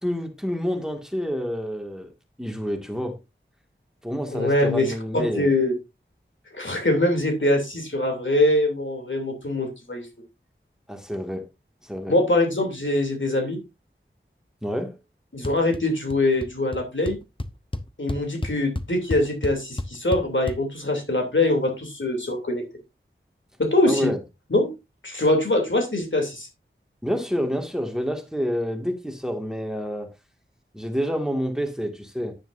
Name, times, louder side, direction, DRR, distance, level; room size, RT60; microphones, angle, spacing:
voice 1, 0.0-2.1 2.4-3.2 4.0-5.5 10.9-11.4 11.8-12.1 14.6-15.0 23.9-24.2 27.0-30.1 30.7-32.3, equal, 5° right, 2.1 m, -28 dB
voice 2, 4.3-5.7 6.5-10.1 12.1-13.6 15.3-17.2 18.0-22.6 23.6-24.1 24.5-24.7 25.0-26.5, left 1 dB, 70° left, 3.0 m, -23 dB
sound 1, 15.4-15.8 16.1-16.5 16.7-16.8 17.1-20.6, left 1 dB, 25° left, 0.9 m, -30 dB
10.0 x 8.9 x 2.7 m
wide cardioid pair, 45°, 21 cm